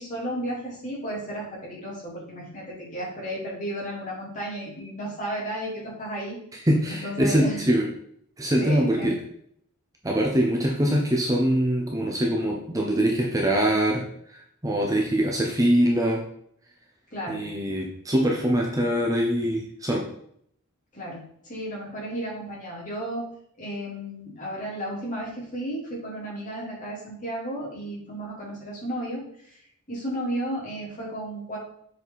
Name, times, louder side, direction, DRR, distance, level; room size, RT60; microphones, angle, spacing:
voice 1, 0.0-6.4 6.9-7.6 8.6-9.2 17.1-17.5 20.9-23.2 23.6-29.6 29.9-31.6, right 1 dB, 35° left, -6 dB, 3.4 m, -33 dB
voice 2, 6.7-7.9 8.4-9.1 10.0-14.0 14.3-16.2 17.3-20.0, equal, 15° right, -1 dB, 0.9 m, -23 dB
7.4 x 5.1 x 4.1 m, 0.67 s
head